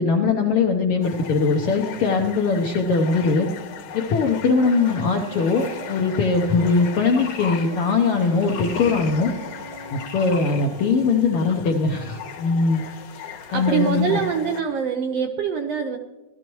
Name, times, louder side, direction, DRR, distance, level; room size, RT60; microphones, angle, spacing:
voice 1, 0.0-3.5 3.9-9.3 9.9-12.8 13.5-14.2, left 4 dB, 70° left, 2 dB, 1.3 m, -21 dB
sound 1, 1.0-14.6, left 6 dB, 85° left, 2.6 m, -37 dB
Bowed string instrument, 4.5-11.2, right 1 dB, 60° right, 0.5 m, -42 dB
voice 2, 13.5-16.0, right 6 dB, 75° right, 5 dB, 1.5 m, -24 dB
17.5 x 13.0 x 3.1 m, 1.1 s
omnidirectional pair, 3.5 m